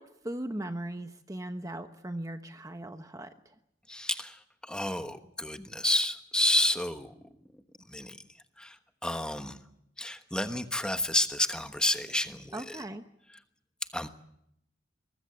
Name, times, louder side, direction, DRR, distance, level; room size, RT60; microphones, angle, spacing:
voice 1, 0.0-3.3 12.5-13.0, right 1 dB, 15° right, 7 dB, 1.0 m, -38 dB
voice 2, 3.9-7.1 7.9-8.2 8.6-9.6 10.0-12.8 13.9-14.1, left 1 dB, 5° left, 7 dB, 1.2 m, -30 dB
23.5 x 20.5 x 7.6 m, 0.75 s
head